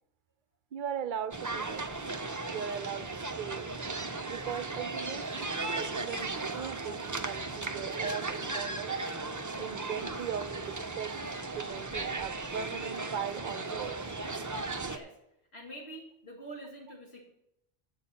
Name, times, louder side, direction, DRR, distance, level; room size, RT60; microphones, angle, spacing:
voice 1, 0.7-2.2 2.5-3.1 3.4-3.7 4.3-9.0 9.6-11.1 11.6-14.0, right 8 dB, 60° right, 14 dB, 0.6 m, -39 dB
sound 1, 1.3-15.0, right 3 dB, 25° right, 0.5 m, -36 dB
voice 2, 15.5-17.3, right 1 dB, 85° left, 0 dB, 2.4 m, -46 dB
11.0 x 5.3 x 7.3 m, 0.82 s
omnidirectional pair, 1.1 m